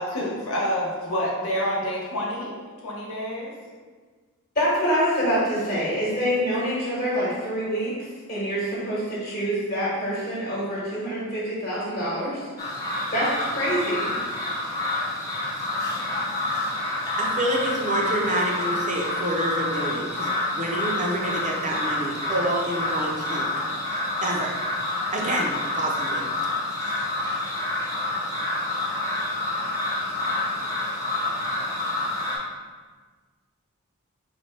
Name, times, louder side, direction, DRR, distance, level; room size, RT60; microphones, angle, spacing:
voice 1, 0.0-2.5 2.8-3.5, equal, 75° left, -4 dB, 1.1 m, -28 dB
voice 2, 4.5-7.9 8.3-12.4 13.1-14.1, equal, 35° left, -8 dB, 1.2 m, -26 dB
sound 1, 12.6-32.4, left 2 dB, 15° left, 0.7 m, -28 dB
voice 3, 17.2-20.3 20.5-23.5 24.2-24.6 25.1-26.2 27.0-27.1, right 1 dB, 35° right, -1 dB, 0.6 m, -27 dB
4.2 x 2.2 x 4.4 m, 1.5 s
head